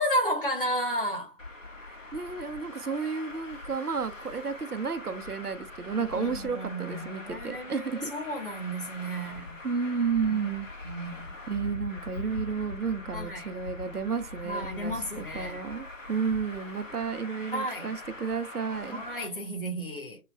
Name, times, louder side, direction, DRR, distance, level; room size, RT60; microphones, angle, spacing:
voice 1, 0.0-1.3 6.0-9.6 10.8-11.2 13.1-13.5 14.4-15.6 17.5-17.9 18.8-20.2, equal, 35° left, 1.0 m, -33 dB
Traffic noise roadway noise, 1.4-19.2, left 2 dB, 60° left, 1.4 m, -42 dB
voice 2, 1.9-8.1 9.3-10.7 11.5-19.0, right 5 dB, 90° right, 0.8 m, -32 dB
6.5 x 2.3 x 2.3 m
figure-of-eight pair, 155°, 44 cm